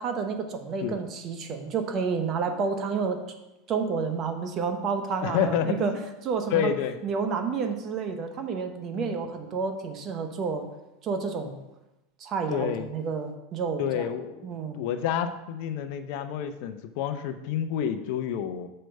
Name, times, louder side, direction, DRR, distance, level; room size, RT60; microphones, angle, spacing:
voice 1, 0.0-3.2 3.7-5.9 6.2-6.7 7.0-10.7 11.0-11.6 12.2-14.0 14.4-14.8, right 5 dB, 40° right, 6 dB, 1.1 m, -30 dB
voice 2, 5.2-6.1 6.5-7.0 8.9-9.2 12.5-12.9 13.8-14.5 14.7-18.7, left 8 dB, 65° left, 9 dB, 0.7 m, -29 dB
6.6 x 4.5 x 6.5 m, 0.96 s
supercardioid pair, 115°, 0 cm